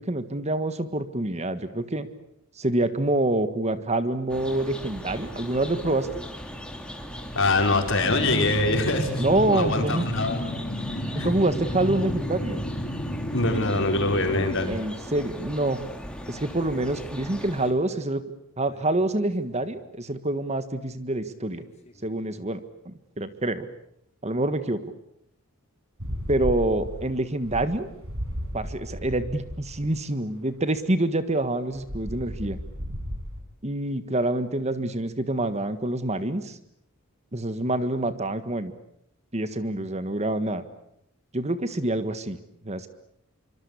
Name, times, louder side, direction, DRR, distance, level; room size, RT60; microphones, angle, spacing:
voice 1, 0.0-2.1 2.5-6.2 9.2-10.1 11.1-12.6 14.7-15.8 16.3-18.2 18.6-21.7 22.0-22.6 22.8-23.7 24.2-24.8 26.3-27.9 28.5-32.6 33.6-36.6 37.3-38.7 39.3-40.6 41.3-42.4 42.6-42.9, right 2 dB, 30° right, 11 dB, 1.6 m, -26 dB
sound 1, 4.3-17.7, equal, 5° left, 3.1 m, -39 dB
voice 2, 7.3-9.2 9.5-9.8 10.1-10.4 11.2-11.3 13.3-14.7, left 2 dB, 60° left, 4 dB, 5.3 m, -23 dB
sound 2, 8.0-14.6 16.2-16.4 16.8-17.2 18.7-18.8 19.2-19.6 21.5-21.9, equal, 30° left, 3.3 m, -32 dB
sound 3, 26.0-29.9 31.7-33.4, equal, 70° right, 6.8 m, -34 dB
26.0 x 25.0 x 8.4 m, 0.74 s
head